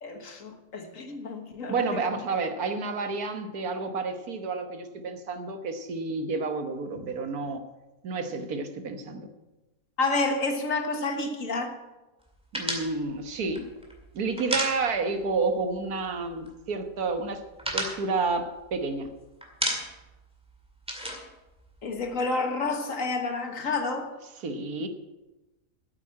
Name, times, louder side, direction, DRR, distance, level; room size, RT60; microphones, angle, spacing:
voice 1, 0.0-2.1 10.0-11.8 21.8-24.1, left 3 dB, 60° left, 1.7 m, -29 dB
voice 2, 1.7-7.6 8.0-9.3 12.5-13.7 14.1-17.4 17.7-19.1 24.4-24.9, right 4 dB, 80° right, 1.7 m, -30 dB
sound 1, 12.5-15.3 15.6-15.8 16.1-16.7 17.1-19.1 19.4-20.2 20.4-22.2, equal, 5° right, 2.0 m, -33 dB
9.2 x 8.4 x 8.6 m
omnidirectional pair, 1.6 m